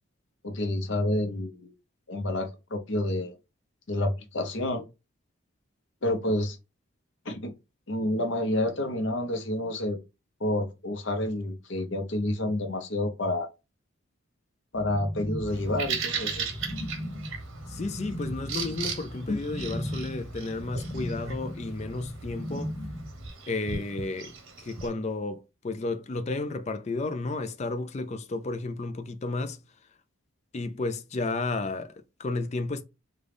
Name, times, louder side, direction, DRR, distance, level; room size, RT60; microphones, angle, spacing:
voice 1, 0.4-1.7 2.1-3.4 3.9-4.9 6.0-6.6 7.2-7.5 7.9-10.0 10.4-13.5 14.7-16.5 19.3-19.4, left 1 dB, 70° left, 0.8 m, -29 dB
sound 1, 14.7-23.3, equal, 55° left, 1.2 m, -37 dB
Bird vocalization bird call bird song, 15.5-24.9, right 6 dB, 85° right, 1.0 m, -38 dB
voice 2, 17.7-22.7 23.5-29.6 30.5-32.8, left 3 dB, 35° left, 0.4 m, -32 dB
3.8 x 2.3 x 3.4 m
head